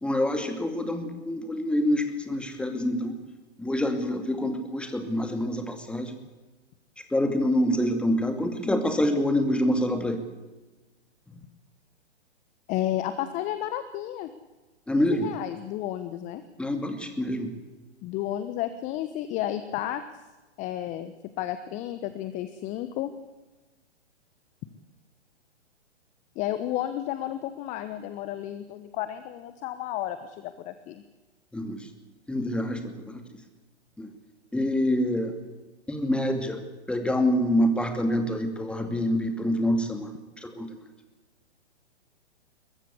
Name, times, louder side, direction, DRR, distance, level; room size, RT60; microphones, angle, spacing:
voice 1, 0.0-3.2 3.6-6.2 7.1-10.2 14.9-15.3 16.6-17.5 31.5-31.9 32.3-33.2 34.0-34.1 34.5-35.3 35.9-36.6 36.9-40.1 40.4-40.7, left 1 dB, 5° left, 6 dB, 2.4 m, -26 dB
voice 2, 12.7-14.3 14.9-16.4 18.0-20.0 20.6-23.1 26.3-31.0, left 12 dB, 20° left, 11 dB, 1.1 m, -32 dB
23.0 x 20.0 x 8.5 m, 1.2 s
figure-of-eight pair, 125°, 35 cm